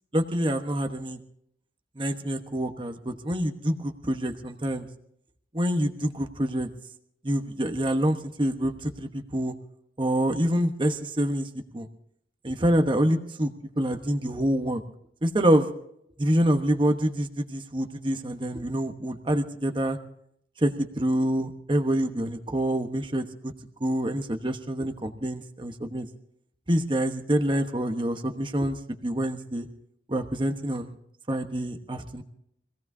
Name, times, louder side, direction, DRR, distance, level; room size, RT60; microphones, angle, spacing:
voice 1, 0.1-1.2 2.0-4.9 5.5-6.7 7.2-9.5 10.0-11.9 12.4-13.5 13.8-14.8 15.2-15.7 16.2-20.0 20.6-23.5 23.8-26.1 26.7-29.7 30.1-30.9 31.3-32.2, right 1 dB, 30° right, 5 dB, 1.1 m, -26 dB
25.0 x 17.0 x 2.8 m, 0.71 s
head